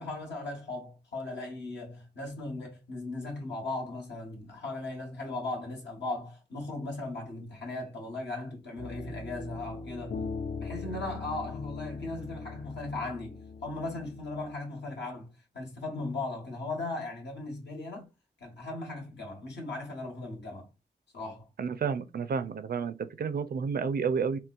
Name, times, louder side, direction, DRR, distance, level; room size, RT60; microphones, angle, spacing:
voice 1, 0.0-10.2 10.6-15.3 15.5-18.1 18.4-20.7 21.1-21.5, left 2 dB, 75° left, 1.2 m, -37 dB
sound 1, 8.8-14.5, left 4 dB, 55° left, 0.5 m, -40 dB
voice 2, 21.6-24.4, right 6 dB, 60° right, 0.4 m, -30 dB
3.8 x 2.1 x 2.4 m
cardioid pair, 50°, 18 cm